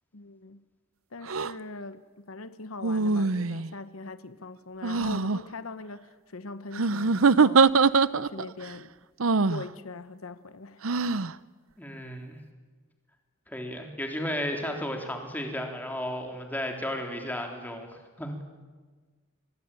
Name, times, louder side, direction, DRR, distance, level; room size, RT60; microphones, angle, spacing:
voice 1, 0.1-0.6 1.1-7.7 8.2-8.9 9.5-10.8, left 3 dB, 85° left, 1.0 m, -41 dB
sound 1, 1.3-1.5 2.8-3.7 4.8-5.4 6.7-8.5 9.2-9.6 10.8-11.3, right 4 dB, 80° right, 0.7 m, -23 dB
voice 2, 11.8-12.4 13.5-18.4, equal, 10° left, 3.6 m, -34 dB
26.0 x 21.0 x 9.0 m
head